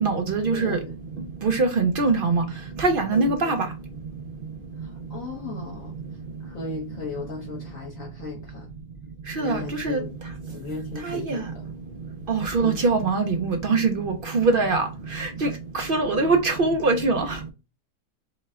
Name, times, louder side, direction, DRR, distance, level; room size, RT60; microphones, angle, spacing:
voice 1, 0.0-0.8 1.4-2.4 2.8-3.6 9.4-10.0 11.0-11.4 12.3-14.8 15.1-15.5 15.7-17.4, right 3 dB, 60° right, 0.5 m, -22 dB
voice 2, 0.5-1.0 3.1-3.6 4.8-8.7 9.3-10.2 10.5-11.7 12.6-12.8, left 3 dB, 60° left, 1.4 m, -36 dB
5.2 x 2.2 x 3.6 m
omnidirectional pair, 1.7 m